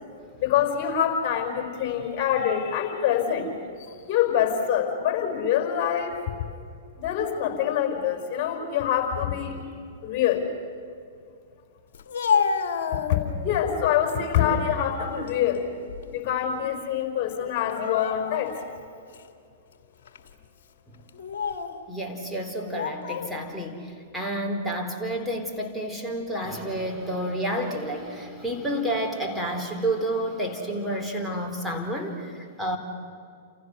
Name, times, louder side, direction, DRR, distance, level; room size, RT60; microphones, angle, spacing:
voice 1, 0.4-3.5 3.8-6.2 7.0-9.6 10.0-10.5 12.9-15.7 16.1-18.6, left 9 dB, 40° left, 5 dB, 5.1 m, -25 dB
Speech, 11.9-13.6 14.1-14.7 15.1-16.3 16.6-16.8 17.6-18.6 19.1-19.3 20.1-20.3 21.1-21.8 22.6-23.3, left 6 dB, 55° left, 2.2 m, -29 dB
voice 2, 21.9-32.8, right 1 dB, ahead, 1 dB, 4.0 m, -30 dB
30.0 x 28.5 x 6.5 m, 2.3 s
figure-of-eight pair, 105°, 0 cm